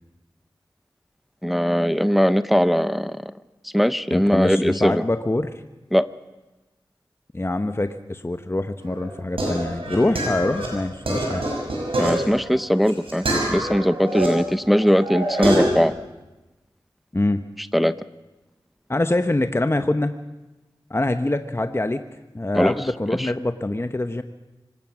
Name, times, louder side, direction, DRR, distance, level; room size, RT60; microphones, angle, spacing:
voice 1, 1.4-3.3 3.7-5.1 5.9-6.1 12.0-15.9 17.6-17.9 22.5-22.8 23.2-23.3, equal, ahead, 14 dB, 0.7 m, -20 dB
voice 2, 4.1-5.6 7.3-11.4 17.1-17.4 18.9-20.1 20.9-22.0 22.3-24.2, left 2 dB, 25° left, 9 dB, 1.0 m, -24 dB
sound 1, 8.8-14.3 14.7-15.8, right 1 dB, 90° right, 6.0 m, -25 dB
25.0 x 18.0 x 6.2 m, 1.1 s
cardioid pair, 40°, 9 cm